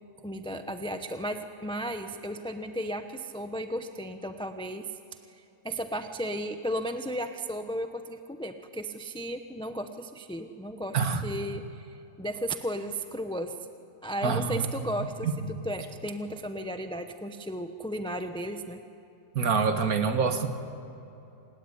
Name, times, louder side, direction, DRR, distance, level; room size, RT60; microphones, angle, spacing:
voice 1, 0.2-4.9 5.3-13.5 14.0-18.8, equal, 5° left, 7 dB, 0.7 m, -35 dB
voice 2, 14.2-14.7 15.2-15.3 19.4-20.5, right 5 dB, 85° right, 7 dB, 2.0 m, -26 dB
28.0 x 16.5 x 9.9 m, 2.9 s
omnidirectional pair, 1.5 m